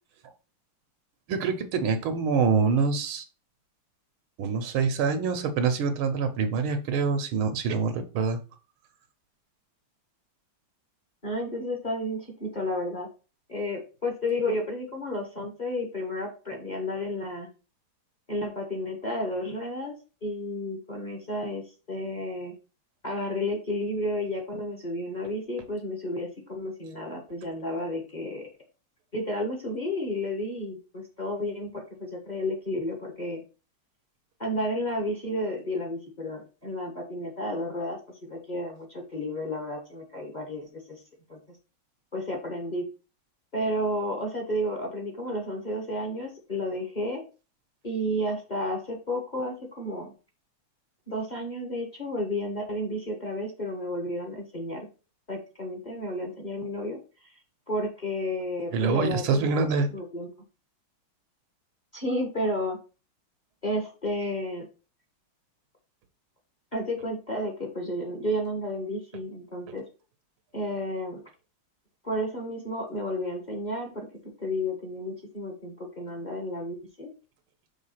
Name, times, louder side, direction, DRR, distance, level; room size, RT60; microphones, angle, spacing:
voice 1, 1.3-3.2 4.4-8.4 58.7-59.9, right 5 dB, 80° right, 8 dB, 1.8 m, -25 dB
voice 2, 11.2-13.1 13.5-17.5 18.3-19.9 20.2-21.6 21.9-22.5 23.0-28.4 29.1-33.4 34.4-38.0 38.3-41.0 41.3-41.4 42.1-42.8 43.5-47.2 47.8-50.1 51.1-54.9 55.3-57.0 57.7-59.5 59.9-60.3 61.9-62.8 63.6-64.7 66.7-69.8 70.5-71.2 72.0-74.1 74.4-77.1, left 1 dB, 25° left, 1 dB, 1.5 m, -32 dB
6.3 x 3.7 x 5.7 m, 0.33 s
omnidirectional pair, 2.3 m